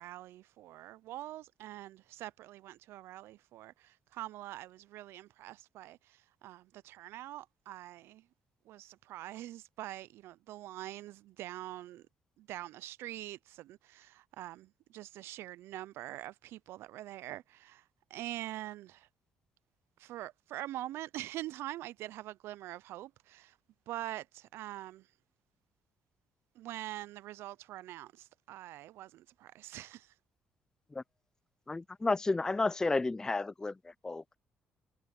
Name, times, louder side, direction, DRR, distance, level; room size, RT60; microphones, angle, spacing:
voice 1, 0.0-8.2 8.7-12.1 12.4-17.8 18.1-19.1 20.0-23.5 23.9-25.1 26.6-30.1, right 15 dB, 85° right, 0.5 m, -44 dB
voice 2, 31.7-34.4, left 3 dB, 15° left, 0.4 m, -32 dB
cardioid pair, 100°, 4 cm